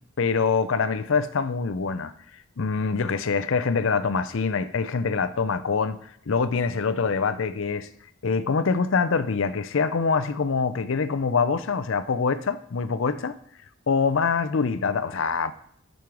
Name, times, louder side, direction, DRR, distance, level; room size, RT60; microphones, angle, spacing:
voice 1, 0.2-2.1 2.6-6.0 6.3-7.9 8.2-13.4 13.9-15.5, left 5 dB, 60° left, 0.5 m, -24 dB
7.6 x 5.3 x 6.1 m
head